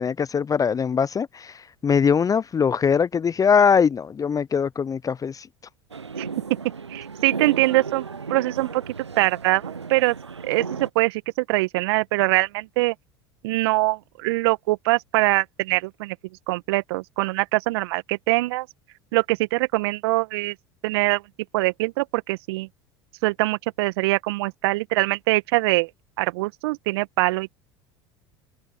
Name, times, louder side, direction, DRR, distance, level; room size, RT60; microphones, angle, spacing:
voice 1, 0.0-1.5 1.8-5.5, left 6 dB, 25° left, 0.9 m, -21 dB
sound 1, 5.9-10.9, right 5 dB, 90° right, 1.0 m, -35 dB
voice 2, 6.2-6.6 6.9-8.1 8.3-8.8 9.2-10.1 10.4-11.2 11.5-12.9 13.4-16.2 16.5-18.7 19.1-20.5 20.8-21.2 21.5-22.7 23.2-25.9 26.2-27.5, right 21 dB, 65° right, 1.9 m, -23 dB
figure-of-eight pair, 70°, 14 cm